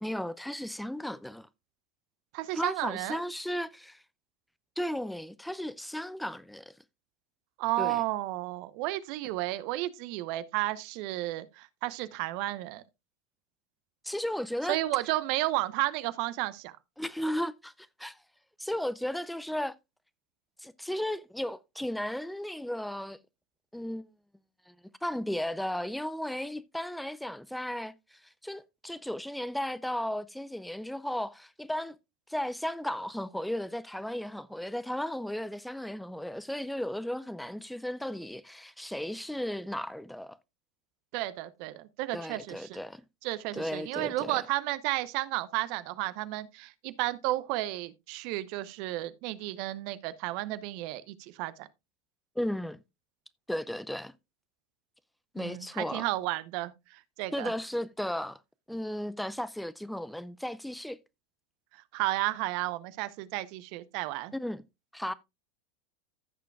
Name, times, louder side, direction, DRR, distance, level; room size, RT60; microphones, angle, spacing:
voice 1, 0.0-1.5 2.5-4.0 4.8-6.7 7.8-8.0 9.2-9.3 14.0-14.8 17.0-18.2 18.6-19.7 20.6-23.2 23.7-24.1 24.7-24.8 25.0-32.0 32.3-40.4 42.1-43.0 43.5-44.4 52.4-52.8 53.5-54.1 55.3-56.1 57.3-58.4 58.7-61.0 64.3-64.6 64.9-65.1, left 1 dB, 5° left, 0.5 m, -35 dB
voice 2, 2.3-3.2 7.6-12.8 14.7-16.7 41.1-42.8 43.2-51.7 55.4-57.5 61.9-64.3, right 17 dB, 60° right, 0.8 m, -32 dB
15.0 x 6.8 x 2.3 m
hypercardioid pair, 85°, 0 cm